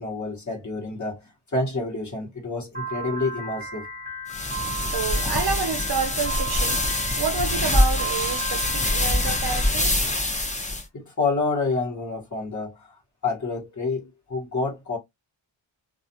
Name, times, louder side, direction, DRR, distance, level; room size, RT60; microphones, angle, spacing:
voice 1, 0.0-3.9 10.9-15.0, left 3 dB, 40° left, 1.1 m, -28 dB
Piano, 2.7-9.7, right 2 dB, 20° right, 0.9 m, -35 dB
sound 1, 4.3-10.8, left 1 dB, 15° left, 0.5 m, -24 dB
voice 2, 4.9-6.8 7.2-10.1, right 5 dB, 55° right, 0.5 m, -29 dB
2.4 x 2.3 x 2.7 m
wide cardioid pair, 125°, 46 cm